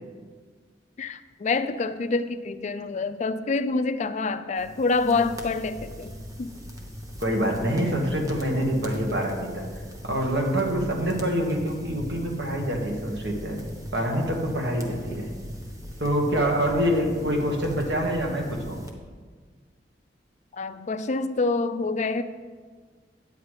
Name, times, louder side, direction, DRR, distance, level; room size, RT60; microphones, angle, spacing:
voice 1, 1.0-6.1 6.4-6.5 20.6-22.2, left 3 dB, 40° left, 11 dB, 0.4 m, -26 dB
sound 1, 4.6-18.9, equal, 20° right, 0.9 m, -40 dB
voice 2, 7.2-9.7 10.0-13.6 13.9-15.3 16.0-18.8, equal, 70° right, 0 dB, 1.6 m, -26 dB
9.6 x 9.1 x 3.3 m, 1.5 s
head